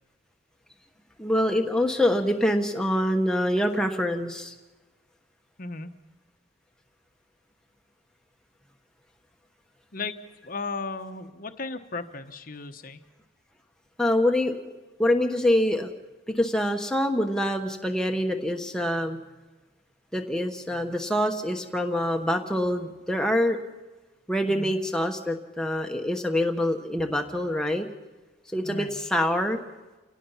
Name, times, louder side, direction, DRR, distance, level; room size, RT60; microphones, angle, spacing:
voice 1, 1.2-4.5 14.0-14.5 15.0-15.9 16.3-19.2 20.1-23.6 24.3-27.9 28.5-29.6, left 1 dB, 5° left, 3 dB, 1.1 m, -25 dB
voice 2, 5.6-5.9 9.9-10.2 10.4-13.0 24.5-24.7 28.6-29.0, left 3 dB, 45° left, 8 dB, 1.0 m, -35 dB
29.5 x 17.5 x 5.7 m, 1.2 s
head